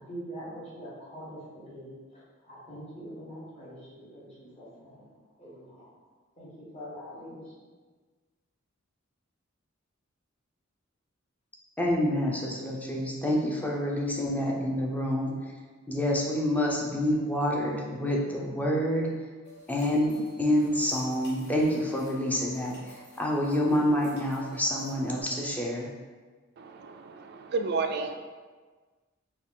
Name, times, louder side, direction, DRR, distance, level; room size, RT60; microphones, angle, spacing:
voice 1, 0.0-5.1 5.4-5.9 6.4-7.5, equal, 30° left, -8 dB, 1.3 m, -44 dB
voice 2, 11.8-15.3 15.9-19.1 19.7-25.9, left 1 dB, 10° left, -2 dB, 0.5 m, -27 dB
sound 1, 19.4-25.2, right 2 dB, 55° left, 1.0 m, -50 dB
voice 3, 26.6-28.1, right 4 dB, 50° right, 6 dB, 0.3 m, -31 dB
4.4 x 2.3 x 3.7 m, 1.4 s
head